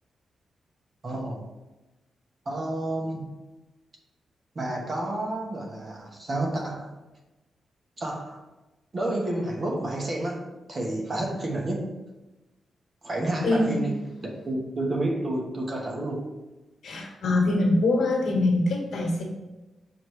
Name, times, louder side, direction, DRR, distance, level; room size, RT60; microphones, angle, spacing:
voice 1, 1.0-1.4 2.4-3.3 4.5-6.9 8.0-8.4 8.9-11.9 13.0-13.9 14.2-16.3, right 1 dB, 35° right, 0 dB, 1.1 m, -30 dB
voice 2, 13.4-13.8 16.8-19.2, left 2 dB, 70° left, 0 dB, 1.4 m, -23 dB
6.2 x 4.8 x 3.1 m, 1.1 s
wide cardioid pair, 155°, 0 cm